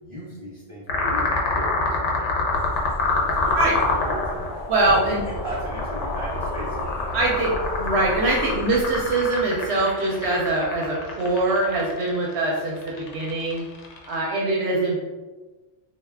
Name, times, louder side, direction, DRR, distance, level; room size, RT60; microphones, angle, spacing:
voice 1, 0.0-2.8 3.0-7.4, right 1 dB, 35° right, -9 dB, 0.5 m, -38 dB
sound 1, 0.9-14.1, left 3 dB, 85° left, 0.9 m, -26 dB
sound 2, 2.5-9.1, equal, 35° left, 0.8 m, -37 dB
voice 2, 4.7-5.2 7.1-13.6 14.1-15.0, right 2 dB, 70° right, -3 dB, 0.8 m, -23 dB
2.3 x 2.2 x 3.2 m, 1.2 s
omnidirectional pair, 1.2 m